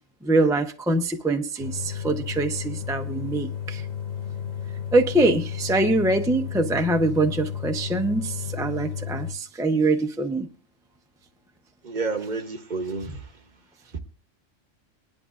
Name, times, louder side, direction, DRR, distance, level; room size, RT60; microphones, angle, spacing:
voice 1, 0.2-3.8 4.9-10.5, right 2 dB, 5° right, 0.3 m, -24 dB
sound 1, 1.6-9.3, left 8 dB, 40° left, 0.7 m, -33 dB
voice 2, 11.8-13.2 13.9-14.0, right 4 dB, 40° right, 0.9 m, -29 dB
20.5 x 10.5 x 2.5 m
omnidirectional pair, 1.3 m